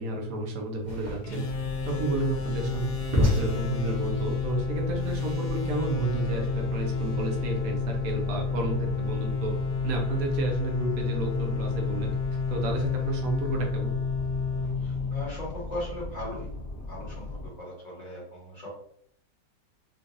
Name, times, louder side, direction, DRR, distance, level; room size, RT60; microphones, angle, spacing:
voice 1, 0.0-9.5 9.8-12.1 12.5-13.9, right 3 dB, 60° right, 1 dB, 1.1 m, -31 dB
sound 1, 0.8-5.9, left 1 dB, 40° right, 0.7 m, -31 dB
sound 2, 1.2-15.8, left 5 dB, 70° left, 1.4 m, -30 dB
sound 3, 1.5-17.5, left 2 dB, 45° left, 0.8 m, -39 dB
voice 2, 14.8-16.5 16.8-18.7, left 1 dB, 25° left, -5 dB, 1.2 m, -38 dB
3.9 x 2.5 x 2.5 m, 0.67 s
omnidirectional pair, 1.8 m